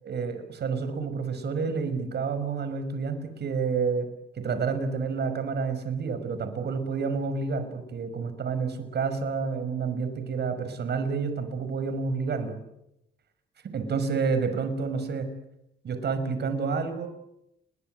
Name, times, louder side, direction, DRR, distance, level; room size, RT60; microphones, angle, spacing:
voice 1, 0.0-4.1 4.3-12.6 13.7-15.3 15.8-17.1, right 5 dB, 55° right, 9 dB, 5.9 m, -29 dB
30.0 x 22.5 x 7.9 m, 0.82 s
cardioid pair, 90°, 20 cm